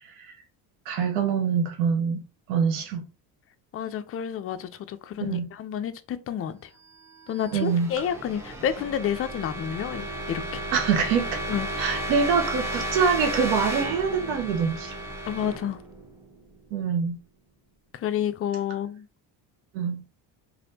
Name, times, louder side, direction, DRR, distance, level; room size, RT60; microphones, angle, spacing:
voice 1, 0.9-2.2 2.5-3.1 5.2-5.5 7.5-7.9 10.7-11.4 11.8-15.0 16.7-17.2 19.7-20.0, right 6 dB, 80° right, 0.9 m, -25 dB
voice 2, 3.7-6.7 7.3-10.6 11.5-11.7 15.2-15.8 17.9-19.1, left 9 dB, 30° left, 0.4 m, -30 dB
sound 1, 7.0-16.7, right 1 dB, 5° right, 0.8 m, -34 dB
3.2 x 2.6 x 2.7 m
supercardioid pair, 80°, 49 cm